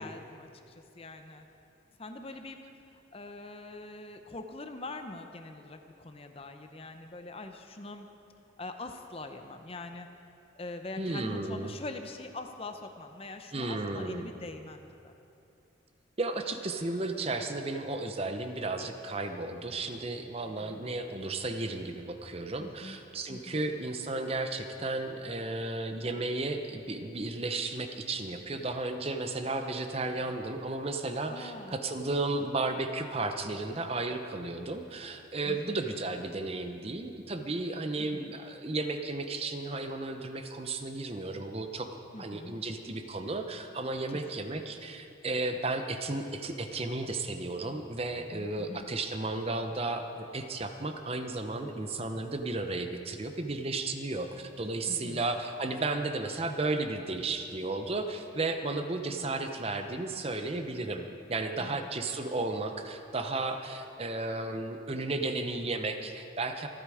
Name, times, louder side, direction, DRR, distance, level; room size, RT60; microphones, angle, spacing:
voice 1, 0.0-1.5 2.0-2.6 2.9-8.1 8.6-10.1 10.6-15.1 20.6-20.8 22.6-23.0 23.3-23.6 31.3-31.8 35.5-35.9 38.0-38.3 42.1-42.5 44.1-44.7 48.2-48.9 54.9-55.3 59.3-59.5 61.6-61.9, left 2 dB, 30° left, 6 dB, 0.7 m, -43 dB
voice 2, 11.0-11.7 13.5-14.3 16.2-41.9 42.2-66.7, right 2 dB, 30° right, 7 dB, 0.8 m, -34 dB
26.5 x 8.9 x 4.9 m, 2.7 s
head